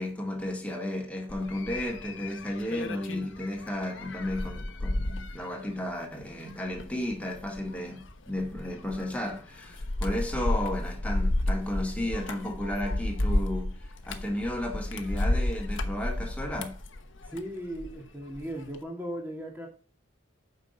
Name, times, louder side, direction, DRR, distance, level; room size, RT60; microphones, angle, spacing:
voice 1, 0.0-13.8 14.0-16.8, left 1 dB, 5° left, 2.1 m, -33 dB
sound 1, 1.3-18.0 18.3-18.8, left 1 dB, 75° left, 1.2 m, -32 dB
voice 2, 17.2-19.7, equal, 10° right, 1.8 m, -37 dB
8.8 x 5.7 x 5.2 m
head